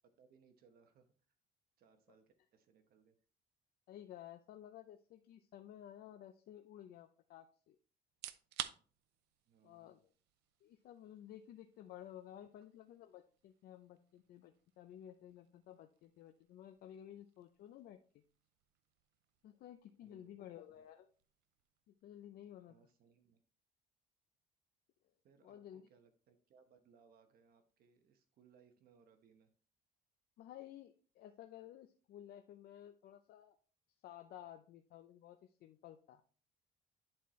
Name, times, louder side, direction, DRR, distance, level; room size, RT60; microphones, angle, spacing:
voice 1, 0.2-1.1 1.8-3.2 9.5-10.0 20.0-20.5 22.6-23.4 25.2-29.5, right 6 dB, 65° right, 8 dB, 1.0 m, -68 dB
voice 2, 3.9-7.8 9.6-10.0 10.6-18.2 19.4-21.1 22.0-22.8 25.4-25.9 30.4-33.6 34.0-36.2, left 11 dB, 65° left, 7 dB, 0.6 m, -54 dB
sound 1, 8.1-22.9, right 13 dB, 85° right, 0.5 m, -55 dB
10.0 x 4.3 x 3.1 m, 0.41 s
cardioid pair, 110°, 17 cm